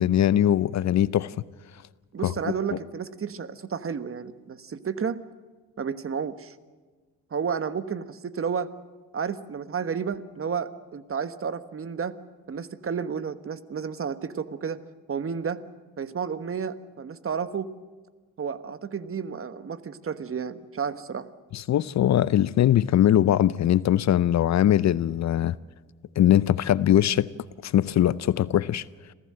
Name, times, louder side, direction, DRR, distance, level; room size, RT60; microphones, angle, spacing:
voice 1, 0.0-1.3 2.2-2.3 21.5-25.5 26.2-27.3 27.6-28.8, left 11 dB, 50° left, 0.6 m, -21 dB
voice 2, 2.1-5.2 5.8-6.5 7.3-8.7 9.1-12.1 12.5-14.8 15.1-15.6 16.0-17.7 18.4-21.3, right 6 dB, 40° right, 1.3 m, -31 dB
27.0 x 15.5 x 7.6 m
supercardioid pair, 70°, 34 cm